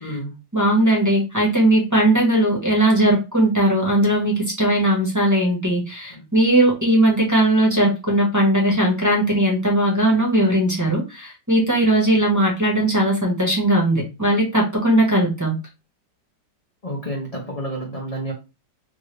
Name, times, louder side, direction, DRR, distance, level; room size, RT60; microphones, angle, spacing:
voice 1, 0.0-0.4 6.1-6.2 16.8-18.3, right 1 dB, 40° left, -2 dB, 0.5 m, -30 dB
voice 2, 0.5-15.5, right 1 dB, 10° right, -4 dB, 1.0 m, -18 dB
3.7 x 2.5 x 3.2 m, 0.28 s
omnidirectional pair, 1.9 m